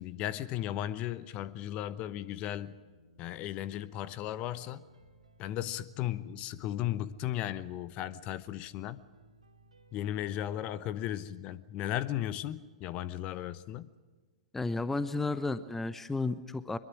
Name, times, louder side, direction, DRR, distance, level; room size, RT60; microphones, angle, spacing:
voice 1, 0.0-2.8 3.2-4.8 5.4-9.0 9.9-13.9, left 12 dB, 35° left, 0.9 m, -36 dB
sound 1, 2.0-10.6, right 1 dB, 85° right, 3.0 m, -62 dB
voice 2, 14.5-16.8, left 3 dB, 10° left, 0.9 m, -32 dB
23.5 x 22.5 x 6.1 m
figure-of-eight pair, 105°, 3 cm